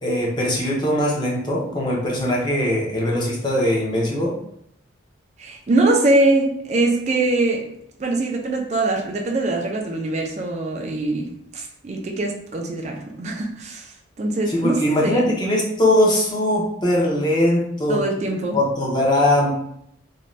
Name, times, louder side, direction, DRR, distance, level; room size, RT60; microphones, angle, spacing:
voice 1, 0.0-4.3 14.5-18.0 18.5-19.5, left 1 dB, 20° left, -4 dB, 0.6 m, -20 dB
voice 2, 5.4-7.6 8.0-13.9 14.2-15.3 17.9-18.6, right 2 dB, 35° right, 2 dB, 0.3 m, -22 dB
2.6 x 2.2 x 3.0 m, 0.72 s
head